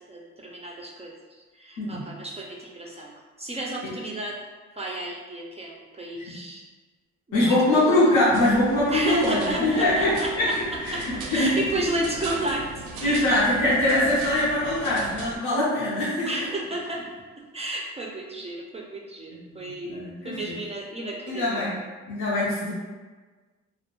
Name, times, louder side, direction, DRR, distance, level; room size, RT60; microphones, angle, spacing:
voice 1, 0.1-3.1 3.4-4.4 4.7-6.6 7.3-8.0 8.9-10.5 10.9-11.0 11.3-13.2 13.9-14.0 16.2-17.0 17.5-21.6, right 1 dB, 20° right, -3 dB, 0.3 m, -32 dB
voice 2, 1.8-2.1 6.3-6.4 7.3-10.5 10.8-11.5 13.0-16.3 19.3-20.5 21.3-21.7 22.1-22.7, left 1 dB, 80° left, -8 dB, 0.7 m, -23 dB
sound 1, 8.3-15.4, right 3 dB, 90° right, 0.4 m, -38 dB
2.1 x 2.1 x 2.9 m, 1.3 s
cardioid pair, 90°, 30 cm